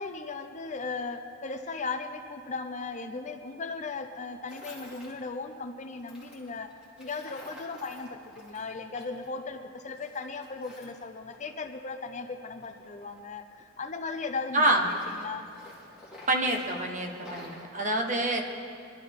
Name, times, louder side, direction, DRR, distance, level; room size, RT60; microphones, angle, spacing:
voice 1, 0.0-6.7 7.0-15.5, left 4 dB, 35° left, 7 dB, 0.7 m, -37 dB
Tools, 4.5-5.1 6.0-9.3 9.6-11.9 12.5-14.1 14.5-17.7, left 1 dB, 5° right, 2.6 m, -49 dB
voice 2, 14.5-14.9 16.3-18.4, right 1 dB, 40° right, 2 dB, 1.3 m, -26 dB
22.5 x 12.0 x 3.7 m, 2.6 s
head